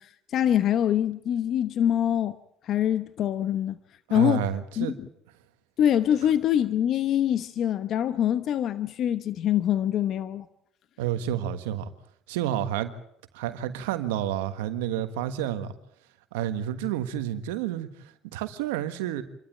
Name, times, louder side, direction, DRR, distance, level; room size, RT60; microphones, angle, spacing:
voice 1, 0.0-2.3 2.6-3.8 4.1-4.4 4.8-4.9 5.8-10.5, left 10 dB, 60° left, 1.0 m, -24 dB
voice 2, 4.1-5.0 11.0-11.9 12.3-12.9 13.3-15.7 16.3-17.9 18.3-19.2, right 11 dB, 90° right, 1.4 m, -29 dB
27.5 x 13.0 x 8.9 m
supercardioid pair, 80°, 0 cm